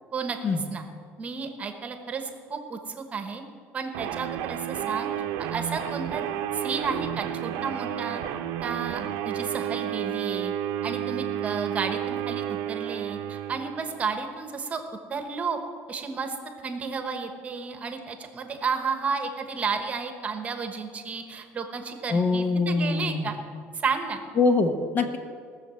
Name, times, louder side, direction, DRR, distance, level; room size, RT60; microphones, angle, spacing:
voice 1, 0.1-0.8 1.2-3.4 3.7-5.1 5.5-6.2 6.5-8.2 8.6-10.5 10.8-14.8 15.1-15.6 15.9-16.4 16.6-23.4 23.8-24.2, right 5 dB, 25° right, 6 dB, 1.2 m, -32 dB
sound 1, 3.9-14.2, right 10 dB, 85° right, 0.9 m, -31 dB
voice 2, 22.1-23.3 24.4-25.2, left 3 dB, 35° left, 7 dB, 1.0 m, -23 dB
18.5 x 6.7 x 7.7 m, 2.2 s
cardioid pair, 155°, 5 cm